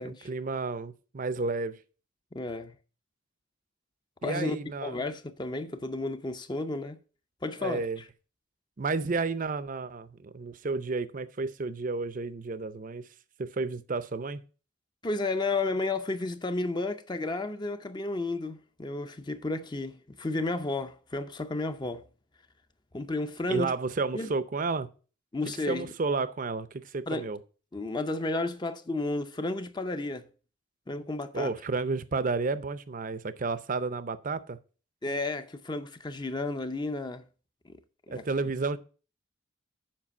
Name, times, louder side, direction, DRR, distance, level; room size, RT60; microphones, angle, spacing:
voice 1, 0.0-1.8 4.2-5.0 7.6-8.0 8.8-13.1 13.4-14.4 23.5-24.9 25.7-27.4 31.3-34.6 38.1-38.8, right 3 dB, 40° right, 0.5 m, -31 dB
voice 2, 2.3-2.8 4.2-4.6 4.8-7.0 7.4-8.0 15.0-22.1 22.9-23.8 24.1-24.3 25.3-25.9 27.1-27.3 27.7-30.3 30.9-31.5 35.0-37.2 37.6-37.8 38.1-38.2, left 2 dB, 20° left, 0.5 m, -32 dB
7.4 x 5.0 x 6.8 m
head